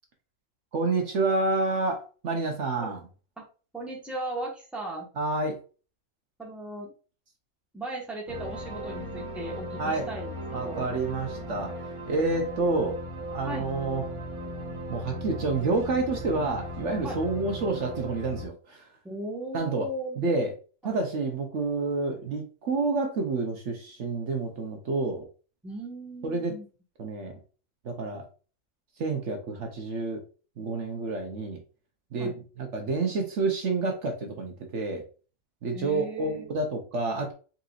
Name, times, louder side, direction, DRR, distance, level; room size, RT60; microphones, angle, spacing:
voice 1, 0.7-3.0 5.2-5.6 9.8-10.1 10.5-11.7 12.1-13.0 13.3-14.0 14.9-18.9 19.5-19.9 20.2-20.5 20.8-25.2 26.2-26.5 27.0-27.4 27.8-28.2 29.0-30.2 30.6-31.6 32.1-32.3 32.6-35.0 35.6-37.3, right 3 dB, 60° right, 3 dB, 1.1 m, -29 dB
voice 2, 3.7-5.1 6.4-6.9 7.7-11.0 13.4-13.6 17.0-17.2 19.0-20.3 20.8-21.0 25.6-26.7 32.2-32.3 35.7-36.5, right 1 dB, ahead, -2 dB, 1.2 m, -37 dB
sound 1, 8.3-18.5, equal, 25° right, 0.9 m, -37 dB
4.3 x 4.0 x 2.4 m, 0.36 s
omnidirectional pair, 1.5 m